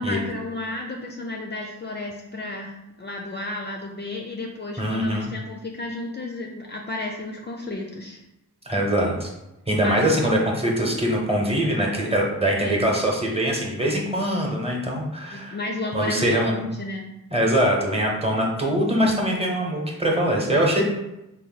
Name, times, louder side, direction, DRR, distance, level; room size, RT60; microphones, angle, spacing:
voice 1, 0.0-2.7 3.0-8.2 9.8-10.4 12.6-12.8 15.3-17.1, left 2 dB, 30° left, 1 dB, 0.4 m, -32 dB
voice 2, 4.8-5.3 8.6-9.3 9.7-15.6 15.9-16.7 17.3-20.9, equal, 15° right, -1 dB, 0.9 m, -23 dB
3.9 x 2.1 x 4.0 m, 0.92 s
wide cardioid pair, 90°, 34 cm